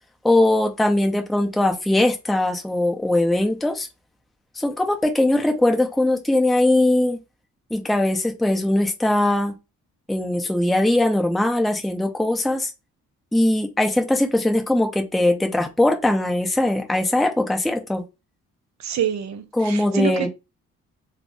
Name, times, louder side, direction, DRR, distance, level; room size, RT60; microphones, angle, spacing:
voice 1, 0.2-3.9 4.6-7.2 7.7-9.5 10.1-12.7 13.3-18.0 19.5-20.3, left 1 dB, ahead, 0.5 m, -20 dB
voice 2, 18.8-20.3, right 10 dB, 65° right, 0.8 m, -26 dB
3.7 x 2.0 x 3.2 m
cardioid pair, 90°, 30 cm